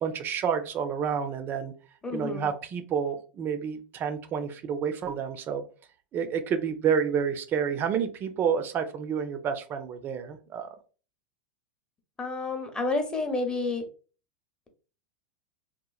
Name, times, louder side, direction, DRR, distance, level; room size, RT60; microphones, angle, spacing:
voice 1, 0.0-1.7 2.1-5.6 6.1-10.7, right 7 dB, 35° right, 8 dB, 0.4 m, -29 dB
voice 2, 2.0-2.5 12.2-13.8, left 3 dB, 15° left, 5 dB, 0.7 m, -30 dB
2.9 x 2.0 x 2.3 m, 0.37 s
hypercardioid pair, 110°, 6 cm